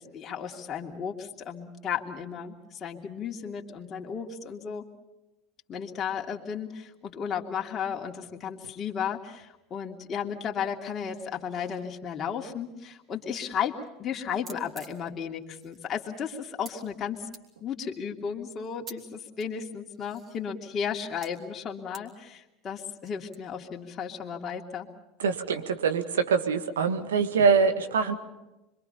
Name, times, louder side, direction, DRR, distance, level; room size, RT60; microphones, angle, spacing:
voice 1, 0.0-4.8 5.7-17.3 17.6-24.9, left 7 dB, 35° left, 1 dB, 2.8 m, -34 dB
sound 1, 13.4-13.9 14.1-14.2 14.4-16.7 17.3-17.4 18.4-19.0 19.4-20.5 21.2-21.3 21.9-22.0 23.0-23.4, right 4 dB, 40° right, 3.8 m, -47 dB
voice 2, 25.2-28.2, right 5 dB, 80° right, 7 dB, 1.8 m, -24 dB
26.0 x 24.0 x 5.7 m, 0.99 s
hypercardioid pair, 75°, 0 cm